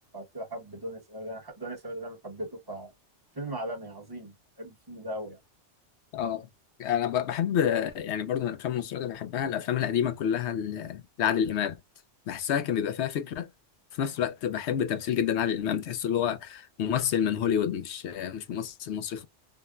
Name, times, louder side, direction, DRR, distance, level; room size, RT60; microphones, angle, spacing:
voice 1, 0.1-2.9 3.3-5.4, right 1 dB, 20° right, 1.0 m, -38 dB
voice 2, 6.1-6.5 6.8-11.8 12.3-13.5 13.9-19.2, left 9 dB, 75° left, 0.8 m, -28 dB
3.6 x 2.1 x 2.3 m
omnidirectional pair, 1.2 m